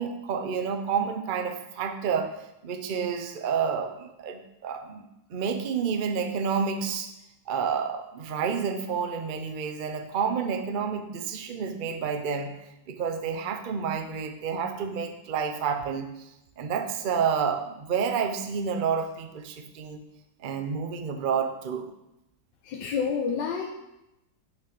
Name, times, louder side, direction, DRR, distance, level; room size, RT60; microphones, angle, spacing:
voice 1, 0.0-2.3 2.6-7.1 7.5-12.6 12.9-16.3 16.6-20.0 20.4-21.9, right 6 dB, 55° right, 7 dB, 0.5 m, -29 dB
voice 2, 22.7-23.7, left 6 dB, 75° left, 2 dB, 1.4 m, -28 dB
7.0 x 6.3 x 6.1 m, 0.90 s
omnidirectional pair, 2.0 m